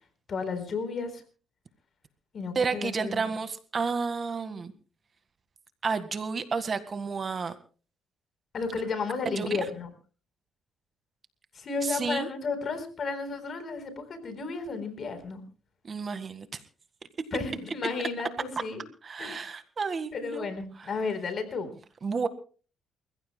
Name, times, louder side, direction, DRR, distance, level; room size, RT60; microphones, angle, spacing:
voice 1, 0.3-1.2 2.3-3.2 8.5-9.9 11.6-15.4 17.3-18.8 19.2-19.5 20.1-21.7, left 4 dB, 50° left, 10 dB, 4.1 m, -33 dB
voice 2, 2.6-4.7 5.8-7.5 9.4-9.5 11.8-12.3 15.8-16.6 19.0-20.5 20.8-20.9 22.0-22.3, right 5 dB, 40° right, 11 dB, 1.7 m, -31 dB
29.0 x 15.5 x 2.2 m, 0.38 s
cardioid pair, 90°, 0 cm